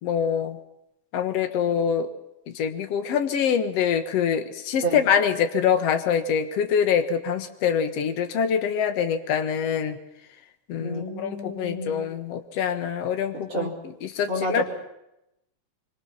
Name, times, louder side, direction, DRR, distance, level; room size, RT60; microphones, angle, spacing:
voice 1, 0.0-0.6 1.1-2.1 2.5-10.0 10.7-14.6, left 7 dB, 75° left, 8 dB, 1.5 m, -25 dB
voice 2, 10.8-11.9 13.5-13.7 14.3-14.6, right 1 dB, 30° right, -2 dB, 4.8 m, -29 dB
25.0 x 25.0 x 5.8 m, 0.84 s
omnidirectional pair, 4.8 m